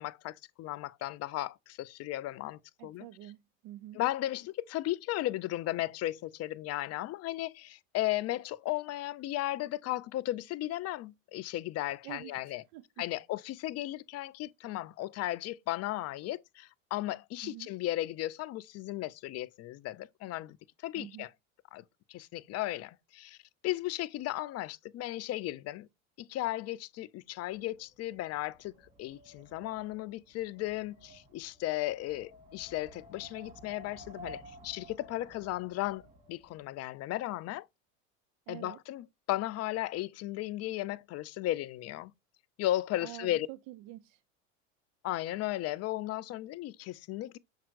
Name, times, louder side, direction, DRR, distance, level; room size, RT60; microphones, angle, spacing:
voice 1, 0.0-3.1 3.9-12.6 13.0-20.6 20.8-21.3 21.7-23.4 23.6-25.9 26.2-28.7 29.0-37.7 38.5-42.1 42.6-43.5 45.0-47.4, left 15 dB, 40° left, 0.6 m, -35 dB
voice 2, 2.8-4.0 12.0-12.8 17.4-17.7 20.9-21.3 38.5-38.8 43.0-44.2, right 15 dB, 50° right, 0.6 m, -47 dB
Wind, 27.4-36.6, equal, 20° right, 3.9 m, -53 dB
7.2 x 5.7 x 2.5 m
hypercardioid pair, 90°, 40 cm